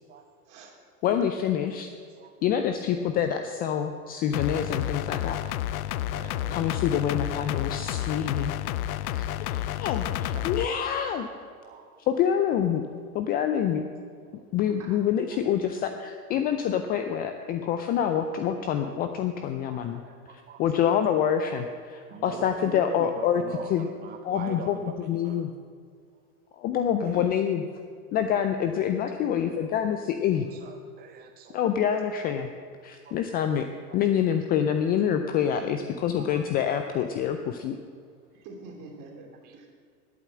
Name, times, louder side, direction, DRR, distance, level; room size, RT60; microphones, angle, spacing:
voice 1, 0.4-1.0 6.1-6.7 9.6-9.8 10.3-10.7 11.9-12.1 14.8-15.0 22.1-22.7 35.4-36.4 38.3-39.7, right 3 dB, 40° right, 1 dB, 2.9 m, -46 dB
voice 2, 1.0-1.9 2.4-5.4 6.5-8.5 9.1-11.3 12.1-12.8 13.1-13.8 14.5-20.0 20.6-23.9 24.2-25.5 26.6-27.7 28.1-30.5 31.5-32.5 32.8-33.7 33.9-37.8, left 9 dB, 20° left, 7 dB, 0.4 m, -26 dB
sound 1, 4.3-10.7, left 13 dB, 70° left, 0.6 m, -30 dB
voice 3, 19.7-20.6 22.1-25.4 27.0-27.3 29.6-29.9 30.6-31.6 33.0-33.1 36.2-36.5, right 7 dB, 20° right, 5 dB, 0.6 m, -42 dB
12.0 x 8.5 x 7.4 m, 2.1 s
hypercardioid pair, 110°, 46 cm